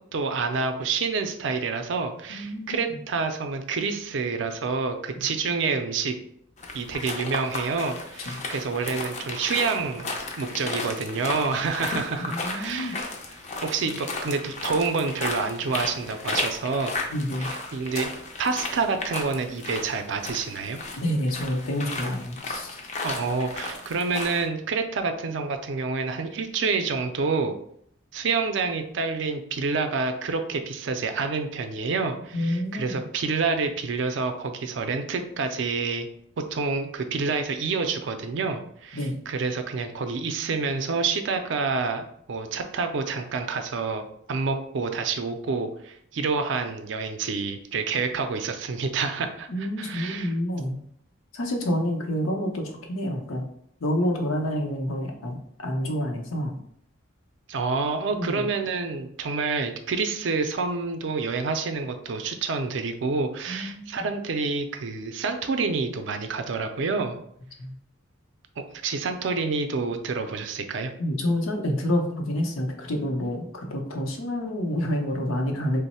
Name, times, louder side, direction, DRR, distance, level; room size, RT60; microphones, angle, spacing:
voice 1, 0.1-6.1 6.7-10.1 10.4-13.0 13.6-16.9 17.4-18.1 18.4-20.8 23.0-27.6 28.1-36.1 36.5-50.3 57.5-67.2 68.6-70.9, right 4 dB, 65° right, 7 dB, 0.4 m, -28 dB
voice 2, 2.3-3.0 5.1-5.2 8.3-8.4 12.3-12.9 17.1-17.5 21.0-22.8 32.3-33.0 38.9-39.2 49.5-50.8 51.3-53.4 53.8-56.6 58.2-58.4 63.5-63.9 67.6-67.7 71.0-75.8, equal, 85° left, 2 dB, 0.7 m, -28 dB
sound 1, 6.6-24.4, left 3 dB, 35° left, 0.4 m, -34 dB
3.0 x 2.0 x 4.1 m, 0.69 s
head